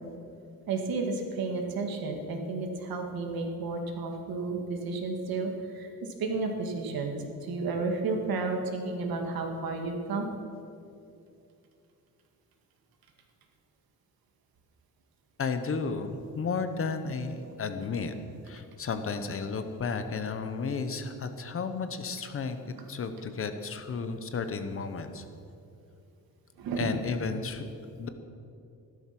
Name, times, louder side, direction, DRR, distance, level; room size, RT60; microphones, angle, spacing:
voice 1, 0.7-5.9 6.2-7.2 7.4-10.3 20.9-21.2 26.6-26.9, right 3 dB, 90° right, 3 dB, 2.2 m, -32 dB
voice 2, 15.4-18.1 18.4-25.2 26.8-27.7 28.0-28.1, left 4 dB, 40° left, 8 dB, 1.0 m, -33 dB
14.5 x 12.5 x 6.0 m, 2.6 s
wide cardioid pair, 160°, 35 cm